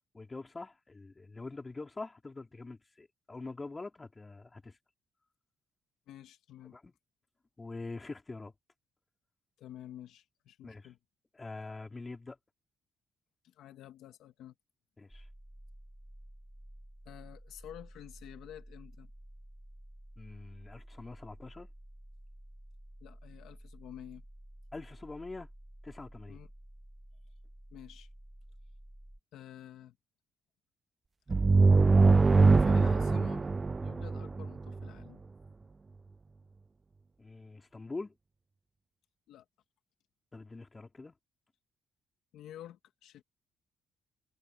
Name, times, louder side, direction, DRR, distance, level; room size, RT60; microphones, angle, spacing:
voice 1, 0.1-4.8 6.6-6.9 7.6-8.5 10.6-10.9 11.3-12.4 15.0-15.3 20.2-21.7 24.7-25.5 25.8-26.4 37.2-38.1 40.3-41.1, left 3 dB, 25° left, 3.3 m, -44 dB
voice 2, 6.1-6.8 9.6-11.0 13.4-14.5 17.1-19.1 23.0-24.2 26.3-26.5 27.7-28.1 29.3-30.0 32.6-33.5 33.8-35.2 39.3-39.4 42.3-43.2, left 11 dB, 80° left, 2.1 m, -49 dB
sound 1, 15.1-29.2, right 1 dB, 5° right, 1.7 m, -52 dB
sound 2, 31.3-34.9, right 3 dB, 30° right, 0.4 m, -23 dB
cardioid pair, 90°, 0 cm